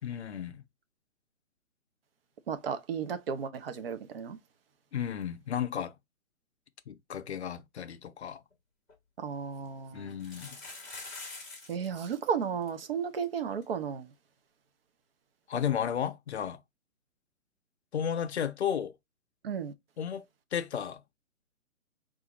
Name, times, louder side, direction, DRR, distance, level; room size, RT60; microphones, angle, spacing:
voice 1, 0.0-0.6 4.9-5.9 6.9-8.4 9.9-10.6 15.5-16.6 17.9-18.9 20.0-20.3 20.5-21.0, left 9 dB, 50° left, 0.5 m, -33 dB
voice 2, 2.5-4.4 9.2-10.1 11.7-14.1 19.4-19.7, right 7 dB, 45° right, 0.5 m, -34 dB
sound 1, 8.5-8.6 8.9-9.0 10.1-11.9 12.1-12.2 12.4-12.7 13.2-13.3 13.6-13.7 15.7-15.8, left 3 dB, ahead, 0.8 m, -44 dB
4.7 x 2.5 x 2.8 m
hypercardioid pair, 160°, 43 cm